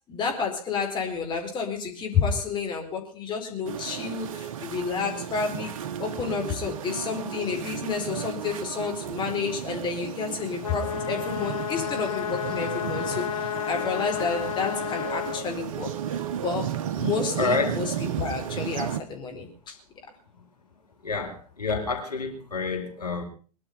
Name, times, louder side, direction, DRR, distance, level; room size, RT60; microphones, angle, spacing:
voice 1, 0.1-5.7 6.0-19.8, left 5 dB, 25° left, 4.4 m, -30 dB
sound 1, 3.6-19.0, right 9 dB, 55° right, 1.2 m, -34 dB
sound 2, 10.6-15.5, left 10 dB, 60° left, 1.1 m, -31 dB
voice 2, 17.4-17.7 20.3-20.4 21.0-23.2, left 3 dB, 80° left, 4.5 m, -28 dB
22.5 x 11.5 x 5.5 m
figure-of-eight pair, 100°, 20 cm